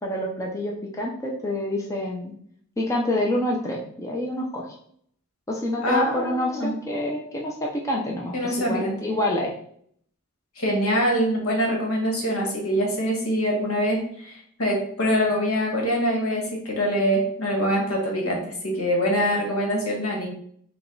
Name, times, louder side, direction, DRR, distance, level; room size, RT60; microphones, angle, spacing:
voice 1, 0.0-2.3 2.8-4.6 5.5-9.5, left 1 dB, 15° left, -2 dB, 0.5 m, -27 dB
voice 2, 5.8-6.7 8.3-9.0 10.6-20.3, equal, 75° left, 0 dB, 1.3 m, -24 dB
4.9 x 2.3 x 3.8 m, 0.63 s
head